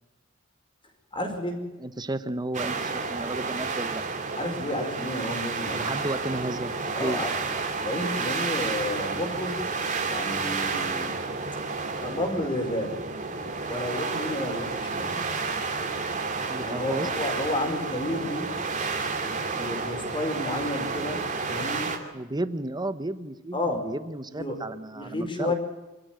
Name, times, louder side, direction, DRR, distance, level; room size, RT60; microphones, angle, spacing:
voice 1, 1.1-1.7 4.4-5.9 6.9-7.3 7.8-9.7 10.1-11.1 12.0-12.9 13.7-15.2 16.6-18.5 19.2-21.2 21.5-21.9 23.5-23.9 24.3-25.5, left 1 dB, 25° left, 4 dB, 4.8 m, -31 dB
voice 2, 1.8-4.0 5.8-7.2 16.4-17.1 22.1-25.5, right 1 dB, 20° right, 12 dB, 1.1 m, -33 dB
sound 1, 2.5-22.0, right 4 dB, 35° right, 2.7 m, -31 dB
25.0 x 13.5 x 9.2 m, 1.1 s
head